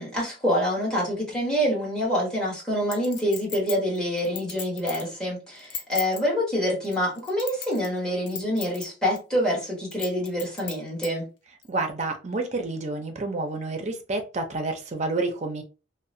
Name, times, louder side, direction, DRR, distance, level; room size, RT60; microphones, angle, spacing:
voice 1, 0.0-11.3, equal, 5° left, 1.2 m, -26 dB
Chink clink, 2.9-5.1 5.6-6.2 6.8-8.0 8.3-8.8 9.2-9.3 9.9-11.1 11.6-11.7, left 7 dB, 65° left, 0.6 m, -35 dB
voice 2, 11.7-15.6, right 3 dB, 35° right, 0.5 m, -29 dB
2.8 x 2.0 x 2.6 m
head